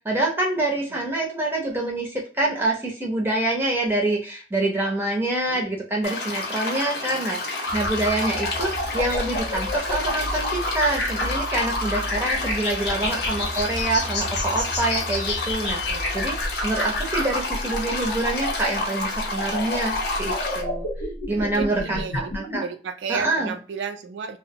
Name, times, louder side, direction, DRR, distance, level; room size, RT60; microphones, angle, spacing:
voice 1, 0.0-19.9 20.2-20.9 21.3-22.6 23.1-23.5, right 2 dB, 10° right, 0.6 m, -26 dB
sound 1, 6.0-20.6, left 3 dB, 65° left, 0.7 m, -31 dB
voice 2, 7.1-7.5 8.6-8.8 12.8-13.4 15.7-16.1 21.3-24.4, right 6 dB, 85° right, 0.4 m, -35 dB
sound 2, 7.6-22.6, left 1 dB, 90° left, 1.0 m, -29 dB
2.8 x 2.1 x 2.7 m
head